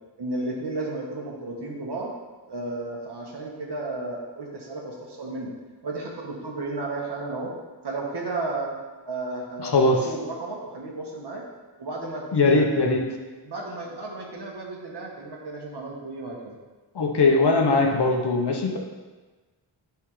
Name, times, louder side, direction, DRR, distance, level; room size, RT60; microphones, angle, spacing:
voice 1, 0.2-2.1 2.5-5.5 5.8-7.5 7.8-8.8 9.1-11.4 11.8-12.8 13.4-16.6, right 2 dB, 60° right, -1 dB, 1.2 m, -33 dB
voice 2, 9.6-10.0 12.3-13.0 16.9-18.8, left 3 dB, 60° left, 1 dB, 0.9 m, -20 dB
9.7 x 3.6 x 3.1 m, 1.3 s
wide cardioid pair, 105°, 46 cm